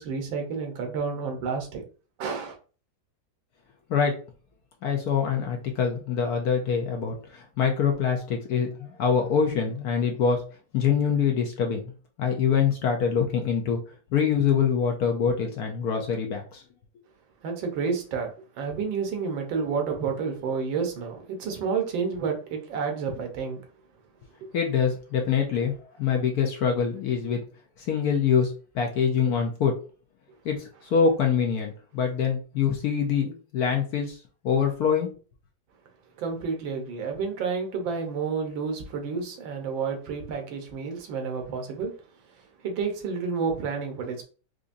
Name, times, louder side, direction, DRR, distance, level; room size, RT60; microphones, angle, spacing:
voice 1, 0.0-1.8 2.2-2.5 17.4-18.3 18.6-23.6 36.2-41.9 42.6-44.2, right 5 dB, 85° right, 3 dB, 1.6 m, -30 dB
voice 2, 4.8-10.4 10.7-11.9 12.2-13.8 14.1-16.6 24.5-27.4 27.9-29.7 30.4-34.2 34.4-35.1, left 7 dB, 65° left, 2 dB, 1.0 m, -25 dB
4.8 x 2.6 x 2.5 m, 0.38 s
omnidirectional pair, 2.0 m